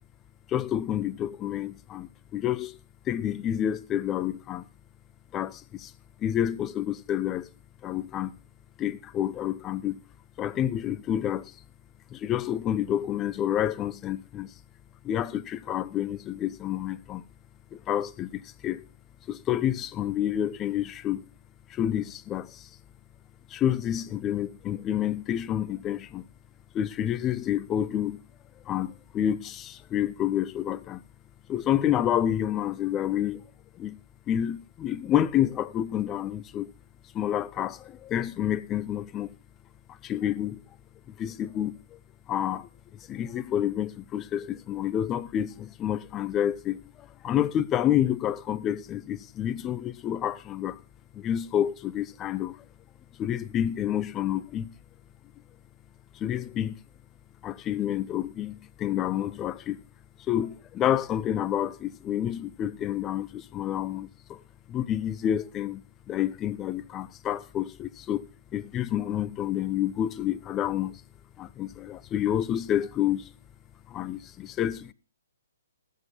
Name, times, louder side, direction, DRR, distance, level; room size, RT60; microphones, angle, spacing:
voice 1, 0.5-2.8 3.1-4.6 5.3-5.9 6.2-7.5 7.8-8.3 8.8-10.0 10.4-11.5 12.1-14.5 15.0-17.2 17.7-18.8 19.3-21.2 21.7-22.7 23.5-26.2 26.7-28.2 28.7-31.0 31.5-33.4 33.7-34.0 34.3-36.7 37.1-39.3 39.9-40.6 41.1-42.0 42.3-42.7 43.1-50.8 51.1-52.6 53.2-54.7 56.1-56.7 57.4-59.8 60.3-64.4 64.7-65.8 66.1-68.3 68.5-71.0 71.4-73.3 73.9-74.9, left 11 dB, 20° left, 0.7 m, -29 dB
18.5 x 8.4 x 3.9 m
figure-of-eight pair, 130°, 0 cm